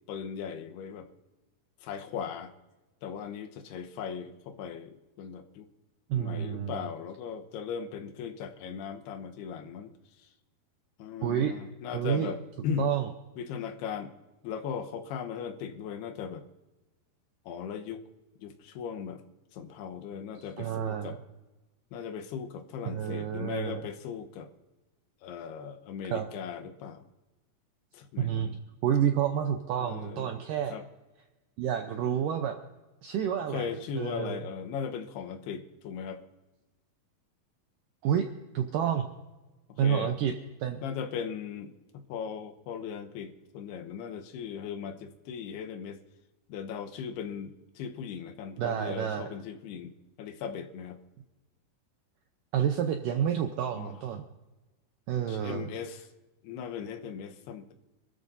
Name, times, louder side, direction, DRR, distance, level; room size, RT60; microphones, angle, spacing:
voice 1, 0.1-1.1 1.8-2.5 3.0-5.7 6.2-9.9 11.0-12.9 13.4-14.1 14.4-16.4 17.5-18.1 18.4-19.2 19.5-21.2 21.9-24.5 25.2-27.1 27.9-28.6 29.8-30.3 30.7-30.8 33.4-36.2 39.7-40.2 40.8-46.0 46.5-51.0 53.7-54.0 55.3-56.1 56.4-57.7, left 7 dB, 75° left, 6 dB, 2.9 m, -38 dB
voice 2, 6.1-6.9 11.2-11.5 11.9-12.3 12.8-13.1 20.6-21.2 22.9-23.9 26.1-26.3 28.2-28.5 28.8-30.7 31.6-32.6 33.0-34.4 38.0-38.3 38.5-39.1 39.8-40.3 40.6-40.8 48.6-49.3 52.5-54.2 55.1-55.7, right 9 dB, 80° right, 5 dB, 1.9 m, -29 dB
26.5 x 13.5 x 2.7 m, 1.1 s
omnidirectional pair, 4.8 m